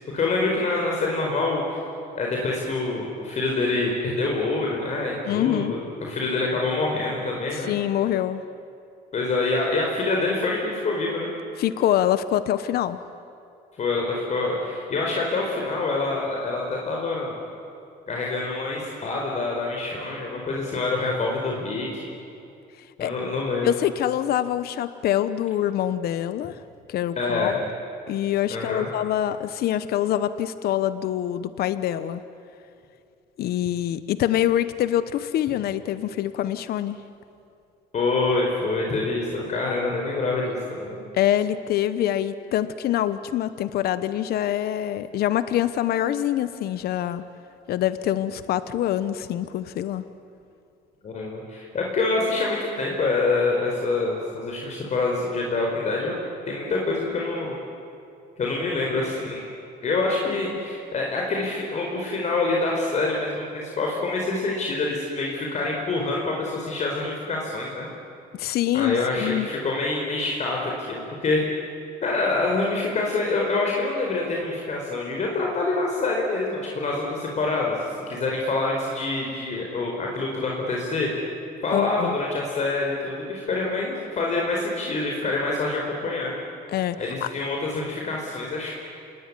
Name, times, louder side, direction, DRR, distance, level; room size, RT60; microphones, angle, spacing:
voice 1, 0.1-1.8 2.1-7.7 9.1-11.3 13.8-17.3 18.1-22.1 23.0-23.7 27.2-27.6 28.5-28.9 37.9-41.0 51.0-57.5 58.4-59.5 59.8-67.9 68.7-71.4 72.0-77.8 78.1-81.1 81.6-86.3 87.0-88.7, left 3 dB, 45° left, -1 dB, 4.7 m, -26 dB
voice 2, 5.3-5.8 7.5-8.4 11.6-13.0 23.0-23.1 23.6-26.6 26.9-27.5 28.1-32.2 33.4-37.0 41.1-47.2 47.7-50.0 68.3-69.5 81.7-82.1 86.7-87.3, left 11 dB, 65° left, 13 dB, 1.0 m, -25 dB
27.5 x 20.5 x 9.7 m, 2.5 s
cardioid pair, 110°, 17 cm